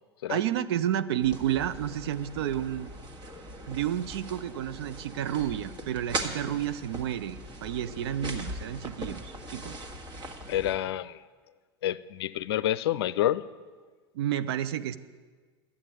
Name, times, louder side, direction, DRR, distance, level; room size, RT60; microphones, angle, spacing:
voice 1, 0.3-2.9 3.7-9.8 14.1-15.0, right 11 dB, 70° right, 13 dB, 0.7 m, -31 dB
sound 1, 1.2-10.7, right 1 dB, 35° right, 1.9 m, -40 dB
voice 2, 10.5-11.2 11.8-13.5, left 12 dB, 70° left, 16 dB, 0.5 m, -28 dB
12.5 x 8.6 x 9.0 m, 1.5 s
hypercardioid pair, 90°, 14 cm